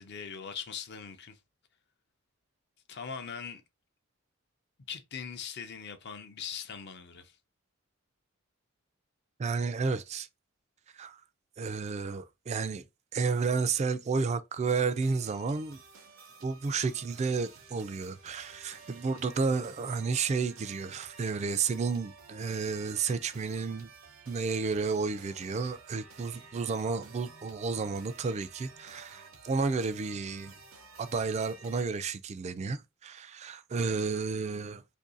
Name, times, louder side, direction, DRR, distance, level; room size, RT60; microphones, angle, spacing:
voice 1, 0.0-1.4 2.9-3.6 4.9-7.4, left 6 dB, 55° left, 0.6 m, -41 dB
voice 2, 9.4-10.3 10.9-11.2 11.6-12.8 13.1-15.8 16.4-23.9 24.3-30.5 31.0-34.8, right 4 dB, 30° right, 0.3 m, -31 dB
sound 1, 14.6-31.8, right 4 dB, 80° right, 0.8 m, -53 dB
2.7 x 2.6 x 3.8 m
head